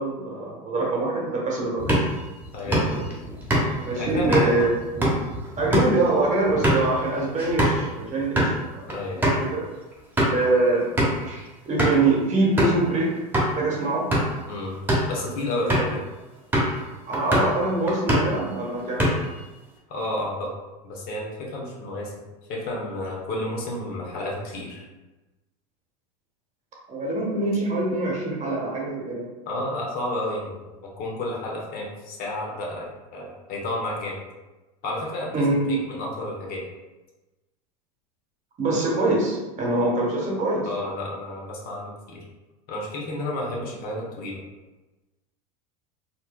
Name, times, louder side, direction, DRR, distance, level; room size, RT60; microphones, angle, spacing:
voice 1, 0.0-2.0 3.8-4.7 5.6-8.8 9.2-9.6 10.3-10.9 11.2-13.1 13.6-14.1 15.5-15.8 17.1-19.0 26.9-29.3 35.3-35.8 38.6-40.7, right 2 dB, 35° right, -3 dB, 1.1 m, -24 dB
sound 1, 1.8-7.8 8.2-8.5 8.9-9.0 9.2-9.4 9.9-10.5 11.0-11.3 11.8-12.1 12.6-12.8 13.3-13.5 14.0-14.4 14.7-15.1 15.7-16.0 16.5-16.8 17.1-17.6 17.9-18.4 18.8-19.4, equal, 10° right, 0.9 m, -23 dB
voice 2, 2.5-2.9 3.9-4.5 8.9-9.4 14.5-14.8 15.1-16.0 19.9-20.5 20.8-24.9 29.5-30.6 31.0-34.2 34.8-36.6 40.7-42.2 42.7-44.4, left 1 dB, 50° left, -2 dB, 0.9 m, -31 dB
4.1 x 2.2 x 2.2 m, 1.1 s
hypercardioid pair, 90°, 20 cm